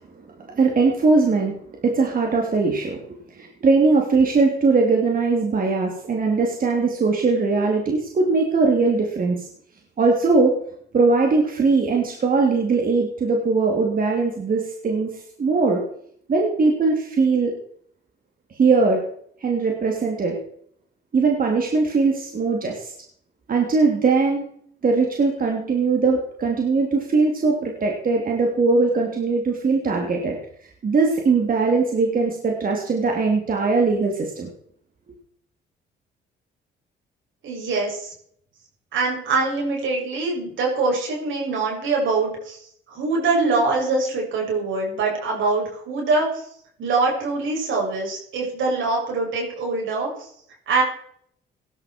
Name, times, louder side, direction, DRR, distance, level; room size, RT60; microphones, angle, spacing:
voice 1, 0.4-1.5 1.8-3.0 3.3-9.5 10.0-10.5 10.9-15.8 16.3-17.5 18.5-19.0 19.4-20.4 21.1-22.9 23.5-24.5 24.8-30.4 30.8-34.5, right 4 dB, 45° right, 0 dB, 3.2 m, -20 dB
voice 2, 37.4-38.1 38.9-42.6 42.9-46.4 46.8-50.3 50.7-50.8, right 3 dB, 75° right, -1 dB, 7.5 m, -23 dB
17.5 x 11.5 x 4.7 m, 0.65 s
cardioid pair, 90°, 20 cm